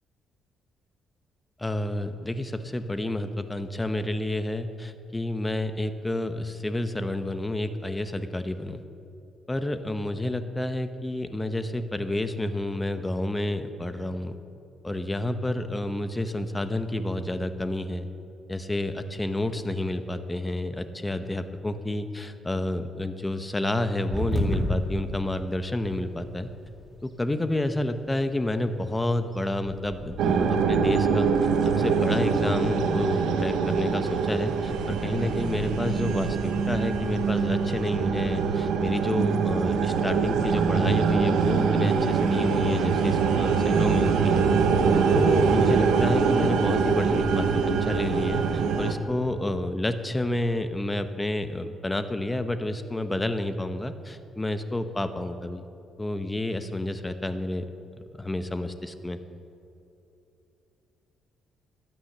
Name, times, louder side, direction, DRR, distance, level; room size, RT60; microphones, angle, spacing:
voice 1, 1.6-8.8 9.5-14.3 14.8-18.1 18.5-26.5 27.0-31.3 31.6-44.5 45.1-55.6 56.0-57.7 58.0-59.2, left 1 dB, 15° left, 9 dB, 0.9 m, -29 dB
sound 1, 24.1-42.0, equal, 5° right, 2.3 m, -39 dB
sound 2, 30.2-48.9, right 5 dB, 85° right, 1.1 m, -24 dB
13.0 x 8.8 x 6.7 m, 2.9 s
cardioid pair, 90°, 0 cm